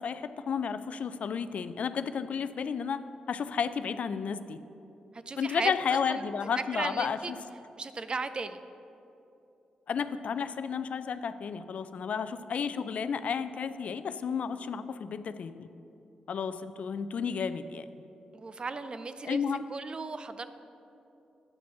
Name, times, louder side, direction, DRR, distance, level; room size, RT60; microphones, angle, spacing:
voice 1, 0.0-3.0 3.3-4.6 5.4-7.4 9.9-15.7 16.3-17.9 19.2-19.6, left 6 dB, 65° left, 13 dB, 0.3 m, -32 dB
voice 2, 5.1-6.2 6.6-7.3 7.8-8.6 18.3-19.4 19.7-20.5, right 4 dB, 40° right, 11 dB, 0.5 m, -36 dB
9.5 x 5.2 x 5.6 m, 2.8 s
cardioid pair, 60°, 2 cm